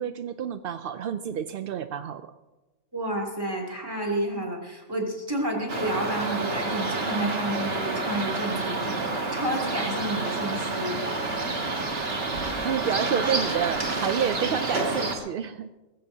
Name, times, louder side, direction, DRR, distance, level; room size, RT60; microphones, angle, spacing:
voice 1, 0.0-2.3 12.6-15.7, right 8 dB, 65° right, 10 dB, 0.5 m, -29 dB
voice 2, 2.9-11.0, right 1 dB, 15° right, -2 dB, 2.8 m, -30 dB
sound 1, 5.7-15.2, right 3 dB, 45° right, 1.7 m, -29 dB
20.0 x 15.0 x 2.8 m, 1.1 s
omnidirectional pair, 1.4 m